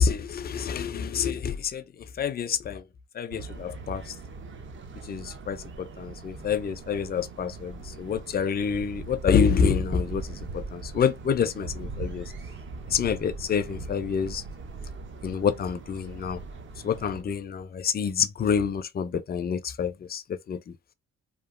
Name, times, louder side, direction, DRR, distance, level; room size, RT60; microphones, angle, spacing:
voice 1, 0.0-1.8 2.2-2.8 3.2-4.0 5.1-12.3 12.9-14.4 15.2-16.4 16.8-20.2 20.5-20.6, left 6 dB, 30° left, 0.4 m, -27 dB
sound 1, 3.3-17.2, right 3 dB, 40° right, 0.6 m, -40 dB
2.9 x 2.4 x 2.4 m
cardioid pair, 90°, 30 cm